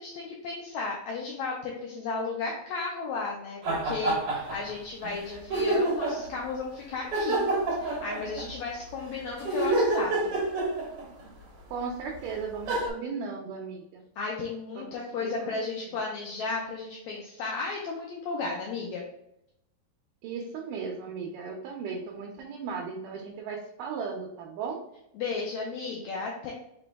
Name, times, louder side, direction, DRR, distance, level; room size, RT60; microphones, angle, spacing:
voice 1, 0.0-7.4 7.8-10.3 14.2-19.0 25.1-26.5, left 4 dB, 80° left, -1 dB, 1.6 m, -34 dB
sound 1, 3.6-4.7 5.0-5.1 5.5-6.3 7.1-8.6 9.4-11.2 12.1-12.2 12.7-12.9, right 2 dB, 60° right, 1.6 m, -27 dB
voice 2, 11.7-14.0 14.8-15.7 20.2-24.8, right 5 dB, 80° right, 0 dB, 2.1 m, -36 dB
5.1 x 3.0 x 3.4 m, 0.80 s
omnidirectional pair, 3.9 m